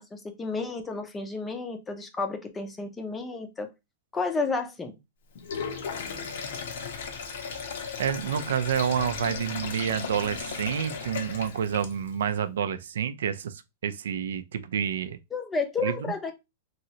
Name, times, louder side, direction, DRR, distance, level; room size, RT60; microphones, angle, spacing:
voice 1, 0.0-3.7 4.1-4.9 15.3-16.3, left 4 dB, 10° left, 0.5 m, -31 dB
Sink (filling or washing), 5.3-12.2, left 6 dB, 75° left, 0.7 m, -36 dB
voice 2, 8.0-15.2 15.8-16.1, right 8 dB, 85° right, 0.4 m, -29 dB
3.0 x 2.7 x 2.8 m
supercardioid pair, 160°, 0 cm